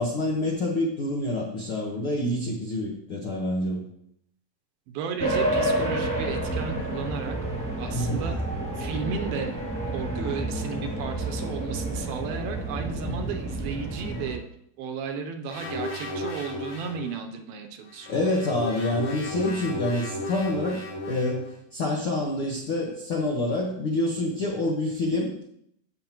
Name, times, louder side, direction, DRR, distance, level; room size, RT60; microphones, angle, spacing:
voice 1, 0.0-3.8 7.9-8.2 13.1-13.2 18.1-25.3, left 1 dB, 70° left, -2 dB, 1.3 m, -27 dB
voice 2, 4.9-7.4 7.8-8.4 8.8-9.5 9.9-14.4 14.8-18.3, right 6 dB, 80° right, 5 dB, 2.5 m, -34 dB
sound 1, 5.2-14.3, right 1 dB, ahead, 1.6 m, -29 dB
sound 2, 15.5-17.1 17.9-21.5, left 1 dB, 50° left, 3.6 m, -35 dB
15.0 x 6.5 x 3.0 m, 0.72 s
omnidirectional pair, 4.5 m